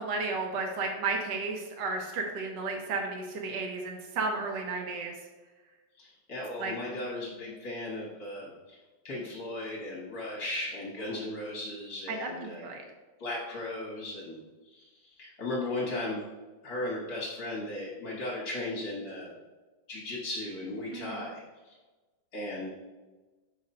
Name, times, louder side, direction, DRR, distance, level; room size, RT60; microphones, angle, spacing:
voice 1, 0.0-5.1 6.6-6.7 11.0-11.2 12.1-12.8 20.9-21.3, right 3 dB, 65° right, 1 dB, 1.3 m, -33 dB
voice 2, 6.0-8.8 9.0-12.7 13.2-14.4 14.6-16.2 16.6-19.4 19.9-21.7 22.3-22.7, left 1 dB, 50° left, -5 dB, 1.5 m, -36 dB
5.0 x 4.1 x 5.2 m, 1.2 s
omnidirectional pair, 2.3 m